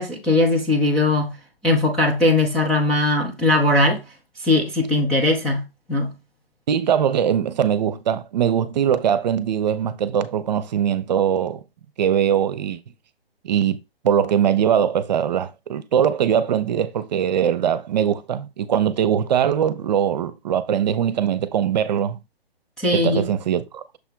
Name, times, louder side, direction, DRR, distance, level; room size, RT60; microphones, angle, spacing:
voice 1, 0.0-1.4 1.6-4.0 4.4-5.6 5.9-6.1 22.8-23.3, left 2 dB, 5° left, 0.4 m, -19 dB
voice 2, 6.7-11.6 12.0-12.8 13.4-13.8 14.0-22.2 22.9-23.8, right 9 dB, 45° right, 0.8 m, -21 dB
6.8 x 3.3 x 4.6 m
figure-of-eight pair, 135°, 30 cm